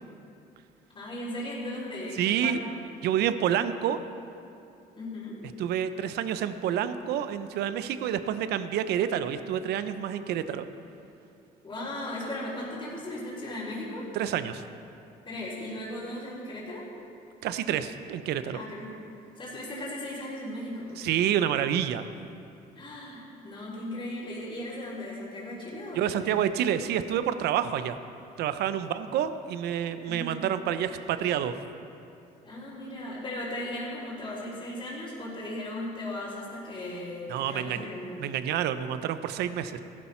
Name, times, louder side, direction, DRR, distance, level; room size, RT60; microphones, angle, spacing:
voice 1, 0.9-2.8 5.0-5.4 11.6-14.1 15.2-16.9 18.5-19.0 19.4-21.0 22.7-26.4 30.0-30.3 32.4-38.2, left 1 dB, 30° left, -9 dB, 3.6 m, -37 dB
voice 2, 2.2-2.6 3.0-4.0 5.6-10.6 14.1-14.6 17.4-18.6 21.0-22.1 25.9-28.0 28.4-31.5 37.3-37.9 38.2-39.8, right 10 dB, 75° right, 11 dB, 0.7 m, -28 dB
15.5 x 11.5 x 4.4 m, 2.6 s
cardioid pair, 110°, 17 cm